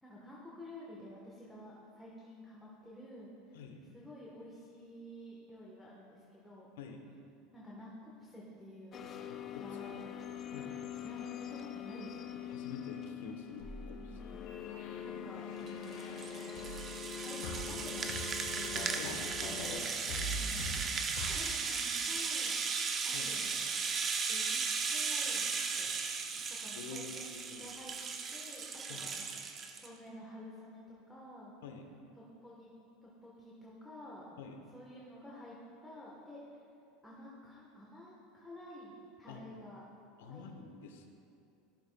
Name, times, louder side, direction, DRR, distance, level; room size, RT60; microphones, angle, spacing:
voice 1, 0.0-3.6 3.9-6.7 7.5-9.1 9.6-12.7 13.9-14.4 15.0-16.6 17.1-18.8 20.3-22.6 23.0-25.9 26.6-28.0 28.3-29.4 29.8-31.5 32.2-32.7 33.0-34.3 34.7-35.6 35.8-36.6 37.0-39.9 40.3-40.5, left 1 dB, 5° left, -6 dB, 1.3 m, -51 dB
voice 2, 6.8-7.1 9.5-9.6 10.5-10.7 12.5-14.0 18.9-19.3 23.1-23.4 26.3-26.5 26.7-27.7 28.9-29.1 31.6-31.9 34.4-34.6 39.3-39.4 40.2-41.1, left 4 dB, 90° left, 4 dB, 1.0 m, -47 dB
sound 1, 8.9-19.9, left 8 dB, 30° left, 0.4 m, -44 dB
sound 2, 13.6-17.1 17.4-19.8 20.1-21.4, equal, 70° left, 1.5 m, -44 dB
Rattle (instrument), 15.7-29.9, right 5 dB, 30° right, 0.6 m, -36 dB
14.5 x 6.8 x 2.3 m, 2.7 s
supercardioid pair, 135°, 0 cm